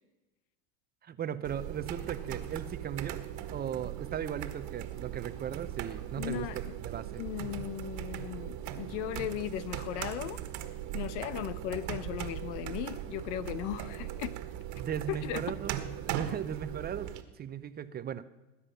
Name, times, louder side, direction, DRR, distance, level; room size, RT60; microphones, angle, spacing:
voice 1, 1.0-3.2 3.5-7.2 14.7-17.1 17.4-18.2, right 9 dB, 25° right, 12 dB, 0.7 m, -37 dB
sound 1, 1.4-17.2, right 11 dB, 50° right, 1.7 m, -39 dB
voice 2, 6.2-6.7 7.2-10.4 10.9-14.4 15.1-15.6, left 12 dB, 70° left, 16 dB, 1.0 m, -37 dB
19.5 x 9.8 x 5.7 m, 1.1 s
supercardioid pair, 115°, 37 cm